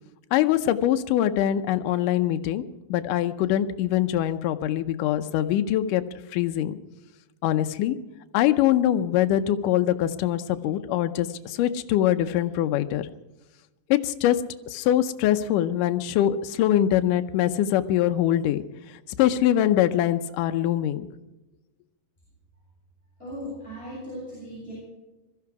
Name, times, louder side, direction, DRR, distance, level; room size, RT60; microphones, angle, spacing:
voice 1, 0.3-2.6 2.9-6.0 6.3-6.8 7.4-8.0 8.3-13.1 13.9-14.4 14.7-18.6 19.2-21.1, left 12 dB, 80° left, 9 dB, 2.2 m, -23 dB
voice 2, 23.2-24.7, equal, 15° left, -8 dB, 8.1 m, -37 dB
21.5 x 13.5 x 4.8 m, 1.1 s
omnidirectional pair, 3.9 m